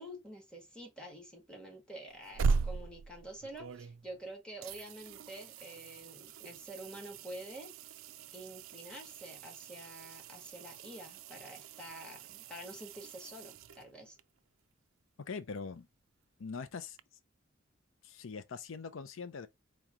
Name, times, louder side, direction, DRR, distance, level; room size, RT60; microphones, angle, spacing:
voice 1, 0.0-7.7 8.3-14.2, right 1 dB, 5° left, 1.7 m, -48 dB
sound 1, 2.1-4.2 4.6-14.2 17.0-17.1, right 4 dB, 85° right, 0.4 m, -40 dB
voice 2, 15.2-15.9 16.4-17.0 18.0-19.5, left 5 dB, 80° left, 0.5 m, -42 dB
4.5 x 3.0 x 3.6 m
head